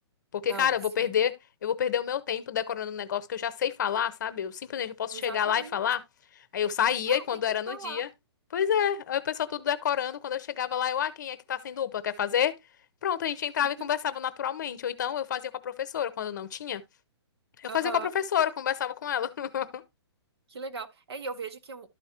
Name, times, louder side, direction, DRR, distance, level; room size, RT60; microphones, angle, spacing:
voice 1, 0.3-1.3 1.6-6.0 6.5-8.1 8.5-12.5 13.0-16.8 17.6-19.8, left 9 dB, 40° left, 0.7 m, -29 dB
voice 2, 5.1-5.8 7.0-7.4 7.7-8.0 17.7-18.1 20.5-21.9, right 4 dB, 65° right, 1.0 m, -39 dB
12.0 x 4.7 x 2.8 m
hypercardioid pair, 175°, 14 cm